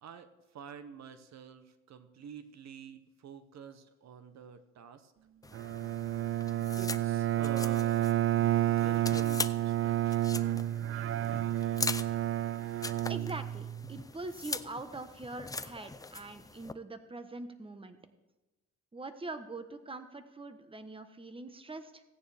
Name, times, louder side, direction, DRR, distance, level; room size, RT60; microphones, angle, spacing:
voice 1, 0.0-5.1 6.8-8.0 8.6-10.3, right 7 dB, 65° right, 10 dB, 1.0 m, -48 dB
sound 1, 5.4-16.7, left 3 dB, 10° left, 0.5 m, -42 dB
Bowed string instrument, 5.5-14.0, right 12 dB, 45° right, 0.4 m, -30 dB
voice 2, 13.1-18.0 18.9-22.0, right 2 dB, 20° right, 9 dB, 1.1 m, -43 dB
16.5 x 9.3 x 3.5 m, 1.1 s
cardioid pair, 90°, 30 cm